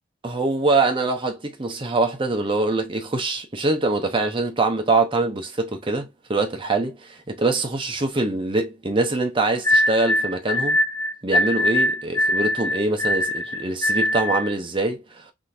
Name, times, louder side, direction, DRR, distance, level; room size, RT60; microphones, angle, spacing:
voice 1, 0.2-10.8 11.2-15.2, right 3 dB, 25° right, 0.7 m, -24 dB
sound 1, 9.6-14.5, left 1 dB, 15° left, 0.4 m, -22 dB
3.7 x 2.8 x 2.5 m
head